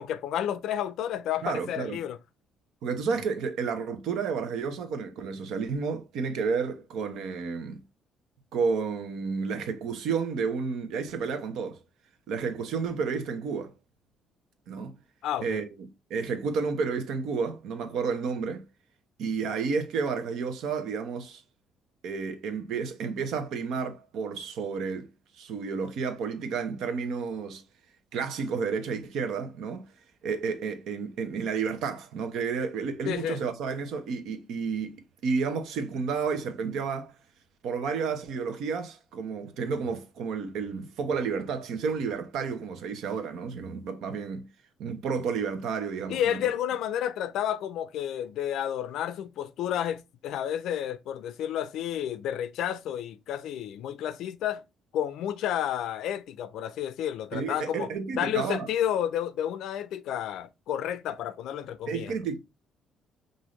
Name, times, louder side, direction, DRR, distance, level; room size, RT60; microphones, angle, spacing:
voice 1, 0.0-2.2 15.2-15.6 33.1-33.4 46.1-54.6 54.9-57.9 58.2-62.1, left 10 dB, 75° left, 0.4 m, -31 dB
voice 2, 1.4-2.0 2.8-7.8 8.5-11.8 12.3-13.7 14.7-15.0 15.4-15.7 16.1-18.6 19.2-21.4 22.0-25.1 25.4-27.6 28.1-29.8 30.2-35.0 35.2-37.1 37.6-44.4 44.8-46.4 57.3-58.7 61.9-62.4, right 5 dB, 75° right, 0.9 m, -31 dB
5.5 x 2.7 x 3.1 m
cardioid pair, 150°, 0 cm